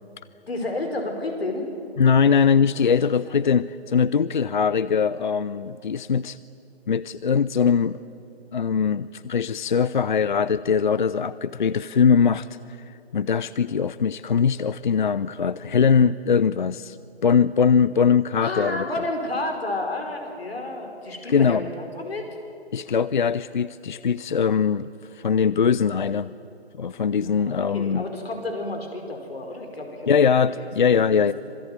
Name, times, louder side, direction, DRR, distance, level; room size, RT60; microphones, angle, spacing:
voice 1, 0.5-1.7 3.2-3.4 18.4-22.3 27.1-30.6 31.0-31.3, left 2 dB, 65° left, 4 dB, 5.3 m, -31 dB
voice 2, 2.0-6.4 6.9-8.0 8.5-12.5 12.9-17.0 17.2-18.9 21.3-21.7 22.7-26.3 26.8-28.0 30.1-31.3, left 6 dB, 50° left, 17 dB, 0.5 m, -21 dB
26.0 x 19.5 x 9.7 m, 2.7 s
figure-of-eight pair, 150°, 32 cm